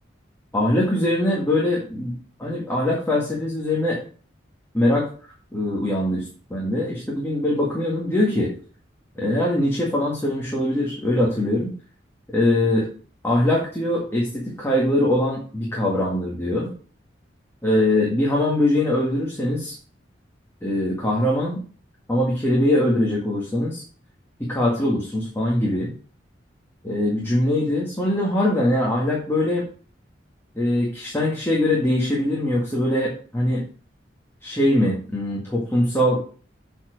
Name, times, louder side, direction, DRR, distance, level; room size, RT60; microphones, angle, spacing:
voice 1, 0.5-4.0 4.7-5.1 5.5-8.5 9.2-11.7 12.3-12.9 13.2-16.7 17.6-19.7 20.6-21.6 22.1-23.8 24.4-25.9 26.8-29.6 30.6-33.6 34.4-36.2, left 1 dB, 15° left, -4 dB, 1.8 m, -22 dB
7.6 x 4.4 x 6.4 m, 0.41 s
head